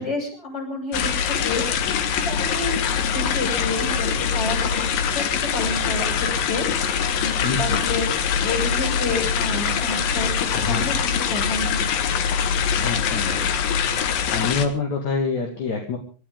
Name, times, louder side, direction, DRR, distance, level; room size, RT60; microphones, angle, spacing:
voice 1, 0.0-1.6 2.3-2.7 3.1-8.1 8.4-11.8, left 2 dB, 30° left, 2 dB, 6.5 m, -30 dB
sound 1, 0.9-14.7, left 7 dB, 85° left, 3.2 m, -23 dB
voice 2, 7.4-7.8 10.5-10.9 12.7-13.5 13.8-16.0, left 4 dB, 60° left, 2 dB, 3.5 m, -27 dB
27.5 x 13.0 x 3.7 m, 0.37 s
omnidirectional pair, 4.0 m